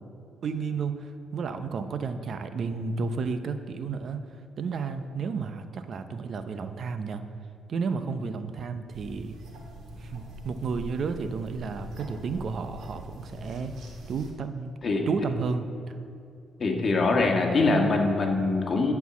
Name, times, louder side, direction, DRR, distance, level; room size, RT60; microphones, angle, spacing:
voice 1, 0.4-4.3 4.6-7.2 7.7-9.4 10.0-13.8 14.1-14.7 15.1-16.0, right 5 dB, 55° right, 9 dB, 0.6 m, -32 dB
sound 1, 8.9-14.3, right 1 dB, 75° right, 2.1 m, -43 dB
voice 2, 16.6-18.9, left 3 dB, 40° left, 1 dB, 1.6 m, -23 dB
12.5 x 4.6 x 7.1 m, 2.7 s
cardioid pair, 90°, 0 cm